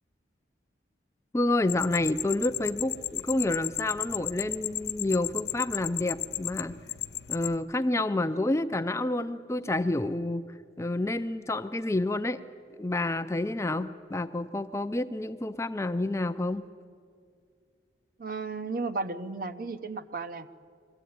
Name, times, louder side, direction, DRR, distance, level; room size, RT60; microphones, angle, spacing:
voice 1, 1.3-6.7 7.3-10.5 10.8-12.4 12.8-16.6, left 2 dB, 15° left, 9 dB, 0.4 m, -29 dB
sound 1, 1.7-7.5, left 13 dB, 65° left, 0.6 m, -34 dB
voice 2, 18.2-20.5, right 3 dB, 50° right, 10 dB, 0.7 m, -34 dB
21.5 x 15.0 x 9.4 m, 2.2 s
head